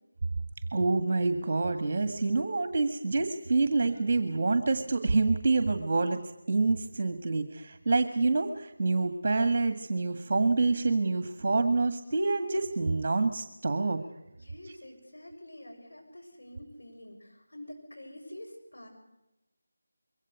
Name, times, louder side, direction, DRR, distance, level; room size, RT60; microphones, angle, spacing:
voice 1, 0.7-6.2 6.5-14.0, right 3 dB, 40° right, 9 dB, 1.8 m, -27 dB
voice 2, 14.3-18.9, left 1 dB, 80° left, 2 dB, 7.2 m, -47 dB
23.0 x 17.0 x 8.2 m, 0.96 s
figure-of-eight pair, 165°, 0 cm